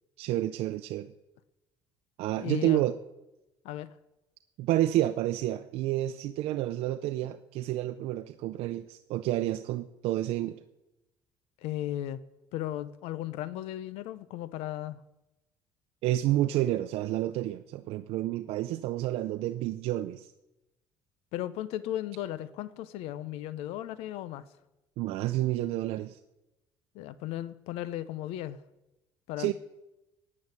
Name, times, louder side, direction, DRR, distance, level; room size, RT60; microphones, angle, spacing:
voice 1, 0.2-1.1 2.2-3.0 4.6-10.6 16.0-20.3 25.0-26.2 29.4-29.5, right 14 dB, 75° right, 8 dB, 0.7 m, -29 dB
voice 2, 2.4-2.8 3.6-3.9 11.6-12.2 12.5-15.0 21.3-24.5 26.9-28.6 29.3-29.5, left 13 dB, 85° left, 16 dB, 0.8 m, -36 dB
15.5 x 8.7 x 9.7 m, 0.98 s
cardioid pair, 135°, 10 cm